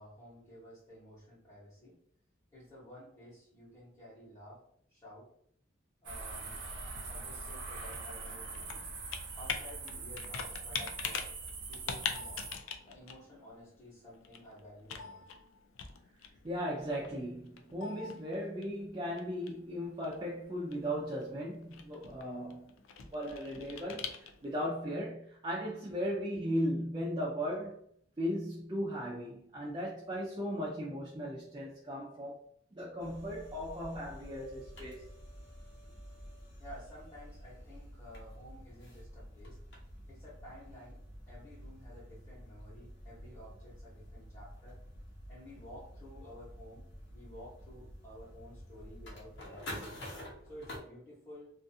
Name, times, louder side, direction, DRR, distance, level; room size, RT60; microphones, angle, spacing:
voice 1, 0.0-2.0 2.5-4.6 4.9-5.3 6.0-6.6 7.1-8.9 9.3-11.3 11.7-12.5 12.8-15.2 36.6-39.6 40.1-41.0 41.3-44.8 45.3-46.8 47.1-50.0 50.4-51.5, equal, 15° left, 0.9 m, -52 dB
sound 1, 6.0-12.6, right 4 dB, 65° right, 0.6 m, -43 dB
Computer keyboard, 6.4-24.6, left 6 dB, 85° left, 0.4 m, -44 dB
voice 2, 16.4-27.8 28.2-32.4 32.7-35.1, equal, 20° right, 0.4 m, -37 dB
sound 2, 33.0-50.8, equal, 60° left, 0.7 m, -49 dB
2.5 x 2.4 x 2.6 m
head